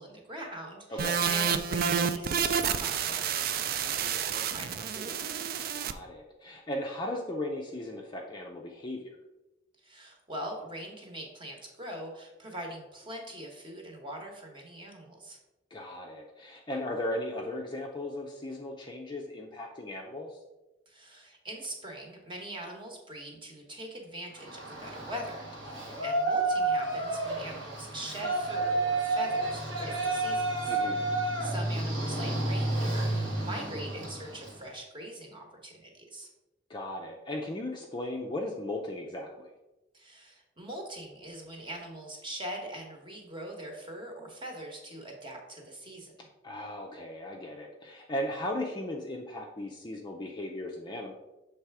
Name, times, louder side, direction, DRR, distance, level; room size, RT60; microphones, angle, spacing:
voice 1, 0.0-5.2 9.8-15.4 20.9-36.3 39.9-46.1, right 1 dB, 25° right, 1 dB, 1.1 m, -42 dB
voice 2, 0.9-1.2 5.7-9.2 15.7-20.4 25.7-26.0 30.7-31.1 36.7-39.5 46.4-51.1, left 1 dB, 25° left, 0 dB, 0.5 m, -37 dB
sound 1, 1.0-5.9, right 7 dB, 50° right, 0.3 m, -29 dB
Yell, 24.4-34.6, right 2 dB, 85° right, 1.6 m, -31 dB
6.8 x 3.3 x 4.7 m, 1.0 s
head